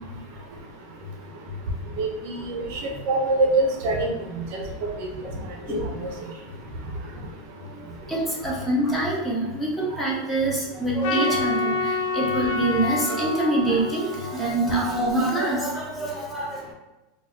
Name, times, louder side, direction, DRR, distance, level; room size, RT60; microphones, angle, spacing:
voice 1, 2.0-4.6 6.0-6.1, right 2 dB, 50° right, 2 dB, 0.4 m, -25 dB
voice 2, 7.6-16.7, right 1 dB, 5° left, -5 dB, 0.6 m, -25 dB
Trumpet, 11.0-15.4, left 3 dB, 60° left, 0.4 m, -28 dB
2.5 x 2.1 x 3.7 m, 1.0 s
supercardioid pair, 175°, 0 cm